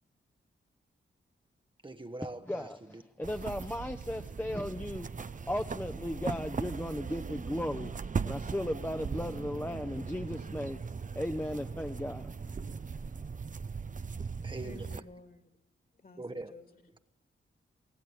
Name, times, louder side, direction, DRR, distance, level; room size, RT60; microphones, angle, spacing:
voice 1, 1.8-2.7 14.4-15.0 16.2-16.5, right 2 dB, 25° right, 1.1 m, -42 dB
voice 2, 2.4-13.4, left 1 dB, 10° left, 1.0 m, -37 dB
sound 1, 3.2-15.0, right 5 dB, 40° right, 0.7 m, -39 dB
voice 3, 14.6-15.5 15.9-16.9, left 3 dB, 45° left, 2.6 m, -53 dB
25.0 x 17.0 x 9.6 m
cardioid pair, 60°, 21 cm